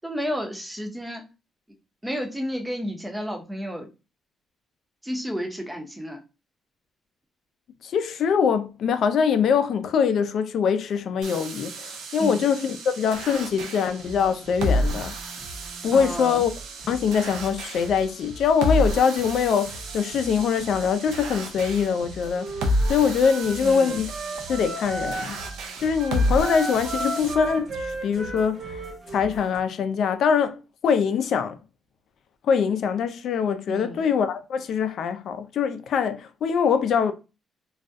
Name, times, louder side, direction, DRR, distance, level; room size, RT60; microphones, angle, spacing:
voice 1, 0.0-1.2 2.0-3.9 5.0-6.2 12.2-12.4 15.9-16.4 23.6-24.0 33.7-34.0, equal, 10° right, 0.6 m, -31 dB
voice 2, 7.8-15.1 15.8-16.5 16.9-24.1 24.5-25.4 25.8-28.9 29.1-31.6 32.4-37.1, left 6 dB, 65° left, 0.3 m, -23 dB
sound 1, 11.2-27.3, equal, 90° right, 0.4 m, -31 dB
sound 2, 14.0-29.6, right 2 dB, 70° right, 1.0 m, -43 dB
Wind instrument woodwind instrument, 22.3-25.6 25.9-29.3, right 2 dB, 45° right, 0.7 m, -34 dB
2.3 x 2.1 x 2.6 m
cardioid pair, 90°, 0 cm